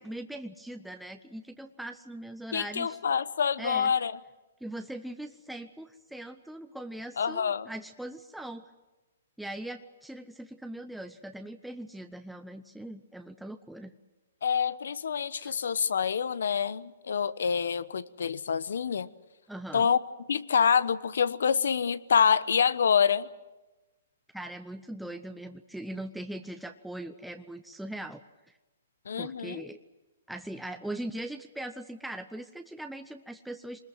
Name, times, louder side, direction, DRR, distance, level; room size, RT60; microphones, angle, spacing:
voice 1, 0.0-3.0 3.6-3.9 4.6-8.6 9.4-13.9 15.4-15.6 19.5-19.9 24.3-28.6 29.2-29.8 30.3-33.8, right 1 dB, ahead, 0.8 m, -40 dB
voice 2, 2.5-4.1 7.2-7.7 14.4-19.1 19.7-20.0 20.3-23.3 29.1-29.7, left 7 dB, 75° left, 0.9 m, -26 dB
24.5 x 20.5 x 7.8 m
hypercardioid pair, 140°, 0 cm